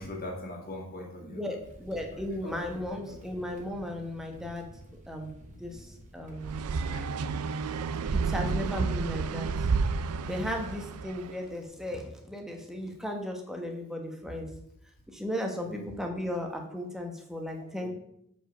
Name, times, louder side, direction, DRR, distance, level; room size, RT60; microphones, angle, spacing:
voice 1, 0.0-1.5 2.1-3.2 6.9-7.0 15.6-15.9 17.8-17.9, left 1 dB, 40° left, 0 dB, 2.1 m, -42 dB
voice 2, 1.2-4.7 5.1-5.3 5.6-6.7 8.1-9.7 10.2-14.5 15.1-17.9, left 1 dB, ahead, 2 dB, 1.1 m, -36 dB
sound 1, 1.6-6.9, right 1 dB, 35° right, 1.1 m, -50 dB
sound 2, 6.4-11.3, right 4 dB, 75° right, 0.4 m, -30 dB
7.3 x 5.3 x 5.1 m, 0.76 s
head